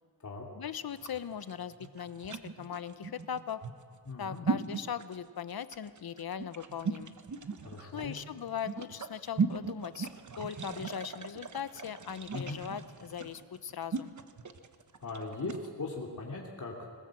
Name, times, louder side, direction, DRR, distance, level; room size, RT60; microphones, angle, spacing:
voice 1, 0.6-3.6 4.2-7.1 7.9-10.1 10.4-14.1, left 8 dB, 65° left, 13 dB, 0.8 m, -39 dB
sound 1, 0.9-15.7, right 5 dB, 45° right, 1.0 m, -38 dB
voice 2, 4.1-4.5 7.6-8.2 12.3-12.6 15.0-16.9, left 3 dB, 50° left, -2 dB, 2.7 m, -39 dB
21.0 x 20.0 x 7.7 m, 2.1 s
wide cardioid pair, 150°, 39 cm